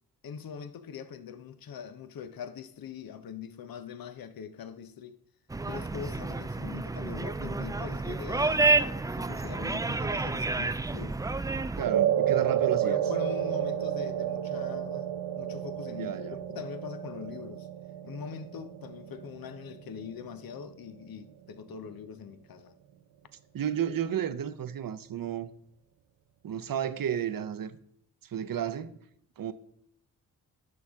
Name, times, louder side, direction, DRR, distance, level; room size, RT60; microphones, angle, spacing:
voice 1, 0.2-5.2 5.6-11.2 12.4-15.1 15.4-17.7 18.0-22.8, left 7 dB, 60° left, 0.9 m, -42 dB
sound 1, 5.5-11.9, right 3 dB, 10° right, 0.3 m, -29 dB
voice 2, 11.8-13.0 16.0-16.4 23.5-25.5 26.4-27.8 28.2-29.0 29.4-29.5, right 9 dB, 60° right, 0.8 m, -32 dB
sound 2, 11.9-20.3, right 11 dB, 85° right, 0.7 m, -30 dB
10.5 x 6.3 x 3.6 m
supercardioid pair, 45°, 39 cm